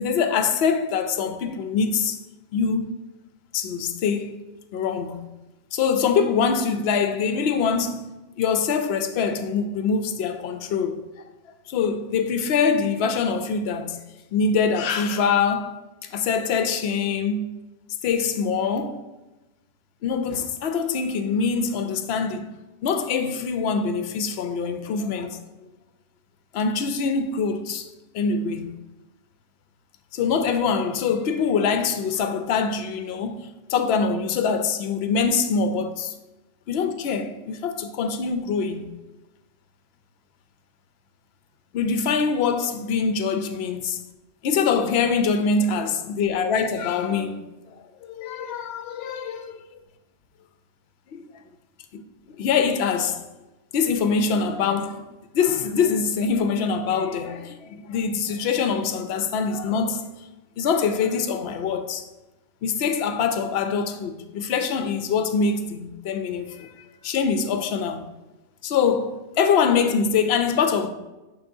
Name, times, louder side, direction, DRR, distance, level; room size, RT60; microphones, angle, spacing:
voice 1, 0.0-2.2 2.5-2.9 3.5-4.4 4.7-5.3 5.7-11.1 11.7-14.0 14.3-15.8 16.1-17.5 18.0-19.0 20.0-22.5 22.8-25.4 26.5-27.9 28.1-28.8 30.1-36.1 36.7-38.9 41.7-44.0 44.4-47.5 48.0-49.6 51.1-51.3 51.9-52.0 52.4-53.2 53.7-60.2 60.6-62.0 62.6-66.7 67.0-68.0 68.6-70.9, left 5 dB, 60° left, 0.8 m, -24 dB
10.5 x 3.7 x 2.7 m
omnidirectional pair, 1.3 m